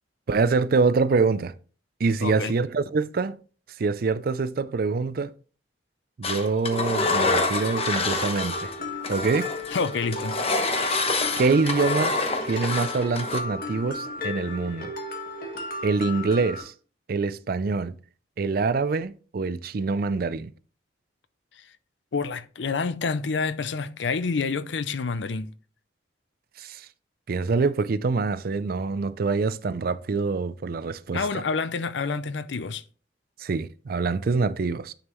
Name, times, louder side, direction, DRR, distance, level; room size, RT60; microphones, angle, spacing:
voice 1, 0.3-1.5 2.0-3.4 3.8-5.3 6.2-8.7 9.1-9.5 11.4-12.1 12.4-14.9 15.8-16.7 17.1-18.0 18.4-20.5 26.6-26.9 27.3-31.2 33.4-34.9, right 4 dB, 55° right, 0.4 m, -25 dB
voice 2, 2.2-2.5 9.7-10.4 21.6-21.7 22.1-25.5 31.1-32.8, left 4 dB, 80° left, 0.5 m, -28 dB
Engine, 6.2-8.8 9.0-13.4, left 3 dB, 35° left, 1.0 m, -27 dB
Mallet percussion, 7.0-16.6, left 3 dB, 50° left, 1.6 m, -34 dB
9.8 x 5.4 x 3.0 m
head